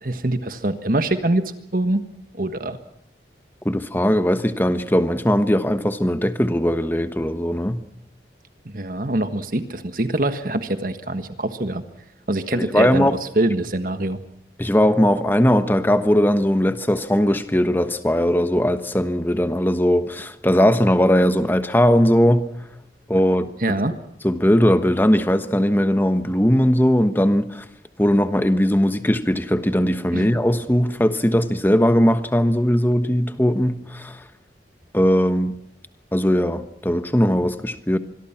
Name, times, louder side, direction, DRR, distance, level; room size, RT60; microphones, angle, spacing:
voice 1, 0.0-2.0 2.3-2.8 8.6-11.8 12.3-13.1 13.3-14.2 23.6-23.9 30.1-30.3, right 1 dB, 50° right, 1.5 m, -24 dB
voice 2, 3.6-7.8 12.5-13.2 14.6-22.4 23.1-23.8 24.2-27.6 28.0-34.2 34.9-35.5 36.1-38.0, equal, 10° left, 1.2 m, -19 dB
25.5 x 22.0 x 5.9 m
head